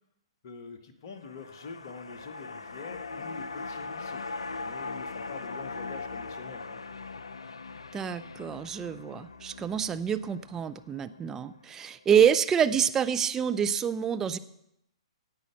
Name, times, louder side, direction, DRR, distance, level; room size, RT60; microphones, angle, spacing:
voice 1, 0.4-4.2 4.6-6.8, left 5 dB, 45° left, 7 dB, 1.5 m, -45 dB
sound 1, 1.1-11.5 11.9-12.0, left 4 dB, 70° left, 0.5 m, -40 dB
voice 2, 7.9-14.4, right 8 dB, 15° right, 11 dB, 0.5 m, -27 dB
16.5 x 5.6 x 7.1 m, 0.78 s
figure-of-eight pair, 115°, 3 cm